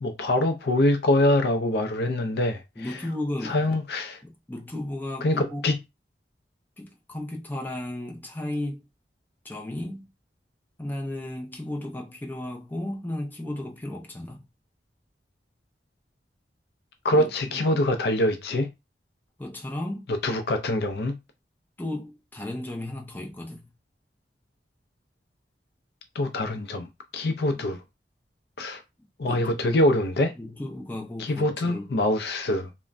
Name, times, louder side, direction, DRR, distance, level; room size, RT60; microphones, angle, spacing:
voice 1, 0.0-2.6 3.5-4.2 5.2-5.7 17.0-18.7 20.2-21.1 26.2-26.9 27.1-27.8 28.6-28.8 29.2-30.3 31.2-32.7, left 1 dB, 65° left, 0.4 m, -24 dB
voice 2, 2.8-3.8 4.2-5.7 6.8-8.9 9.4-10.1 10.8-14.5 17.1-17.7 19.4-20.1 21.8-23.7 27.6-27.7 29.3-29.8 30.3-32.0, left 1 dB, 10° left, 0.5 m, -34 dB
3.2 x 2.1 x 2.5 m
head